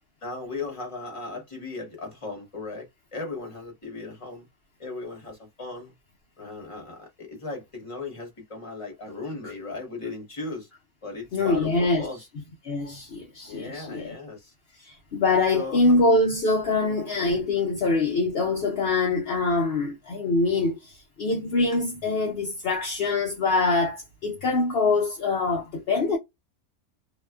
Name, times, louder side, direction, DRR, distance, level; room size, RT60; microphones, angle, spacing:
voice 1, 0.2-4.5 4.8-5.9 6.4-10.7 11.0-12.2 13.5-14.5 15.5-15.9 16.8-17.0, left 3 dB, 25° left, 1.1 m, -37 dB
voice 2, 11.3-12.0 12.6-14.1 14.8-26.2, left 3 dB, 60° left, 0.6 m, -24 dB
2.8 x 2.3 x 2.2 m
omnidirectional pair, 1.6 m